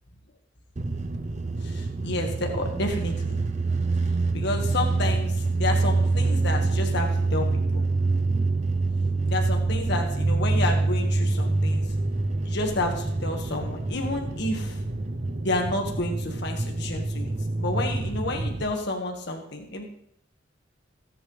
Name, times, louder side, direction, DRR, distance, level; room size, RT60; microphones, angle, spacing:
sound 1, 0.8-18.6, right 3 dB, 35° right, 0.6 m, -26 dB
voice 1, 1.6-3.4 4.3-7.8 9.3-11.9 12.4-14.8 15.4-19.8, left 2 dB, 60° left, 2 dB, 1.6 m, -30 dB
17.0 x 8.8 x 3.3 m, 0.70 s
head